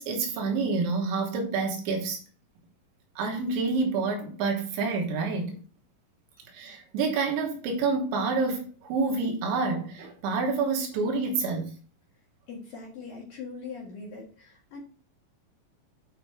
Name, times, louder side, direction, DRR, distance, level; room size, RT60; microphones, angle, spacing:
voice 1, 0.0-2.2 3.2-5.6 6.5-11.7, right 4 dB, 75° right, 3.2 m, -28 dB
voice 2, 12.5-14.8, left 4 dB, 60° left, 2.7 m, -41 dB
8.7 x 5.2 x 3.4 m
omnidirectional pair, 5.8 m